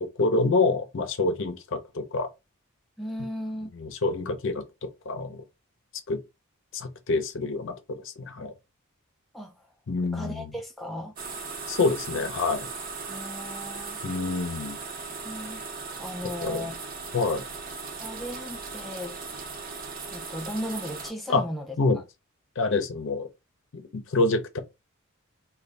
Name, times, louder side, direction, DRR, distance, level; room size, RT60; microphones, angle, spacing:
voice 1, 0.2-2.3 3.7-5.4 6.1-6.2 6.7-8.5 9.9-10.5 11.7-12.7 14.0-14.8 16.4-16.7 17.1-17.4 21.3-21.4 21.8-22.0 22.6-23.3 23.7-24.6, left 3 dB, 60° left, 0.6 m, -27 dB
voice 2, 3.0-3.7 9.3-9.5 10.1-11.1 13.1-14.0 15.2-15.6 16.0-16.8 18.0-19.2 20.1-21.8, equal, ahead, 0.4 m, -36 dB
sound 1, 11.2-21.1, right 4 dB, 40° right, 0.6 m, -38 dB
2.6 x 2.3 x 3.3 m
head